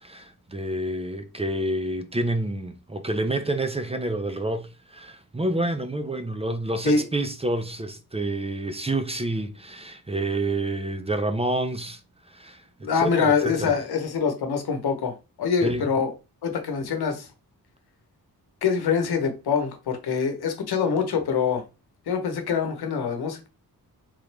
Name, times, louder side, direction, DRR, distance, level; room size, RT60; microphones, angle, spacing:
voice 1, 0.0-12.0 12.3-12.6 13.0-13.8 15.6-15.9, right 1 dB, 15° right, 0.5 m, -28 dB
voice 2, 12.8-16.1 16.4-17.3 18.6-21.6 22.1-23.5, left 6 dB, 90° left, 1.0 m, -24 dB
3.8 x 3.0 x 3.3 m
wide cardioid pair, 95°, 37 cm